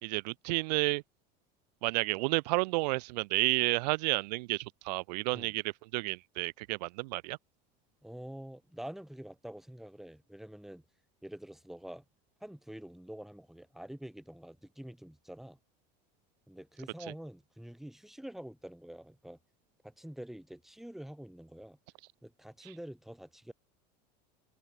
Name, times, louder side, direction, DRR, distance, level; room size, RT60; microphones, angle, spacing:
voice 1, 0.0-1.0 1.8-7.4 22.6-22.7, right 24 dB, 80° right, 0.8 m, -31 dB
voice 2, 8.0-10.8 11.2-12.0 12.4-15.6 16.5-19.4 19.8-21.8 22.2-23.5, right 1 dB, ahead, 1.2 m, -46 dB
supercardioid pair, 115°, 21 cm